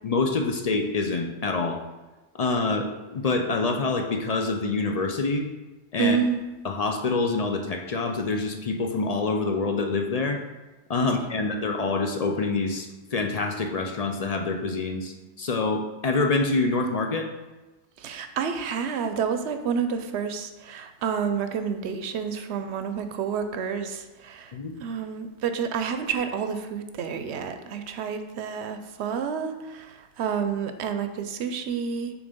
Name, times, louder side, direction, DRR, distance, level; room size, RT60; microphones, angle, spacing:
voice 1, 0.0-1.8 2.3-5.5 5.9-6.2 6.6-10.4 10.9-17.3 24.5-24.8, left 3 dB, 50° left, 3 dB, 0.5 m, -26 dB
voice 2, 6.0-6.4 11.3-11.4 18.0-32.1, right 6 dB, 70° right, 8 dB, 0.8 m, -29 dB
7.0 x 3.2 x 5.2 m, 1.1 s
omnidirectional pair, 1.2 m